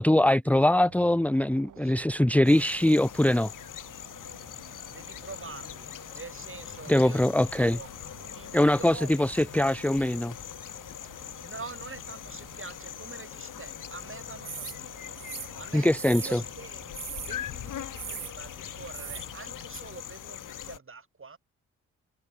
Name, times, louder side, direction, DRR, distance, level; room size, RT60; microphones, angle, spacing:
voice 1, 0.0-3.5 6.9-7.8 8.5-10.3 15.7-16.4, left 1 dB, 5° left, 1.1 m, -22 dB
sound 1, 0.5-19.7, right 9 dB, 55° right, 6.6 m, -53 dB
voice 2, 1.8-2.1 4.9-7.9 8.3-9.3 9.5-9.8 11.4-16.8 17.2-21.4, right 4 dB, 35° right, 6.8 m, -46 dB
sound 2, 2.4-20.8, left 11 dB, 60° left, 2.3 m, -42 dB
sound 3, 14.4-14.8 15.2-16.4 16.9-17.4 17.9-18.3 18.9-19.3 19.7-19.8, right 12 dB, 90° right, 1.7 m, -40 dB
hypercardioid pair, 40°, 37 cm